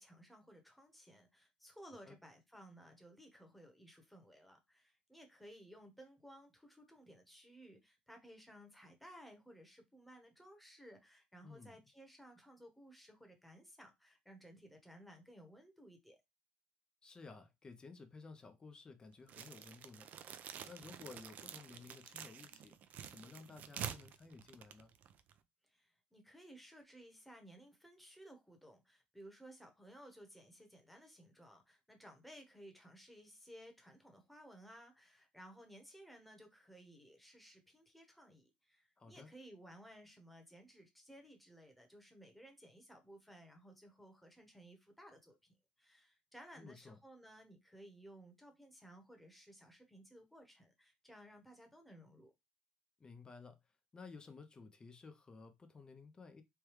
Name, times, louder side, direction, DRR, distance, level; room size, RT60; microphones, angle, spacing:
voice 1, 0.0-16.2 25.6-52.3, equal, ahead, 1.0 m, -58 dB
voice 2, 11.4-11.8 17.0-20.1 20.6-22.7 23.1-24.9 39.0-39.3 46.6-47.0 53.0-53.6 53.9-56.4, left 4 dB, 25° left, 0.5 m, -55 dB
sound 1, 19.3-25.4, right 9 dB, 55° right, 0.4 m, -49 dB
3.3 x 2.2 x 3.1 m
supercardioid pair, 100°, 3 cm